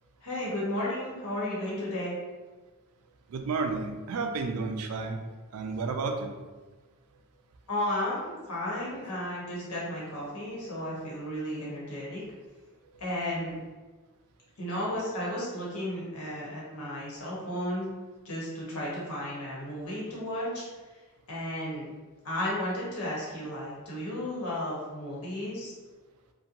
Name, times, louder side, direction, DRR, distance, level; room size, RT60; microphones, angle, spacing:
voice 1, 0.2-2.2 7.7-12.2 13.0-13.6 14.6-17.9 18.2-20.6 21.3-21.8 22.2-25.7, left 1 dB, 85° left, -6 dB, 1.0 m, -33 dB
voice 2, 3.3-5.2 5.5-6.3, right 4 dB, 85° right, 5 dB, 0.4 m, -31 dB
2.8 x 2.2 x 2.4 m, 1.3 s
head